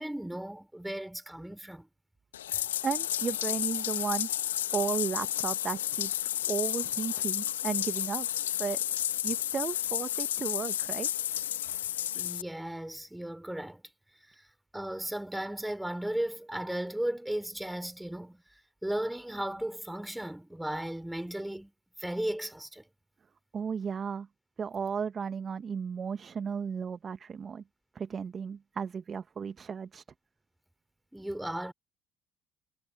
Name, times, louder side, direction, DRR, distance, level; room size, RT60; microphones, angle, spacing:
voice 1, 0.0-1.9 12.1-13.8 14.4-14.5 14.7-18.4 18.8-21.7 22.0-22.8 31.1-31.7, right 1 dB, 5° right, 5.2 m, -35 dB
Bathtub (filling or washing), 2.3-12.4, left 12 dB, 75° left, 2.4 m, -32 dB
voice 2, 2.5-4.3 4.7-8.3 8.6-8.8 9.2-11.1 23.5-24.3 24.6-27.6 28.0-30.0, right 6 dB, 35° right, 1.8 m, -34 dB
figure-of-eight pair, 55°, 0 cm